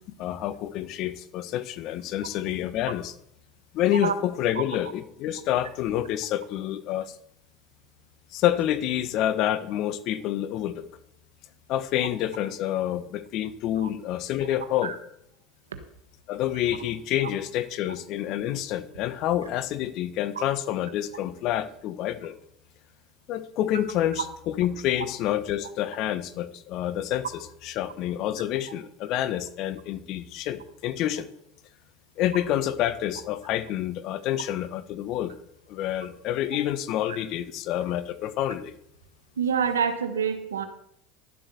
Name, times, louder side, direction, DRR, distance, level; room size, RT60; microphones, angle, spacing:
voice 1, 0.1-3.1 3.7-7.2 8.3-10.9 11.7-14.9 16.3-22.4 23.3-27.3 27.6-31.3 32.2-35.3 35.7-38.7, left 12 dB, 55° left, 14 dB, 1.2 m, -28 dB
voice 2, 39.4-40.6, right 7 dB, 85° right, 9 dB, 1.3 m, -27 dB
11.5 x 7.6 x 6.9 m, 0.75 s
hypercardioid pair, 85°, 0 cm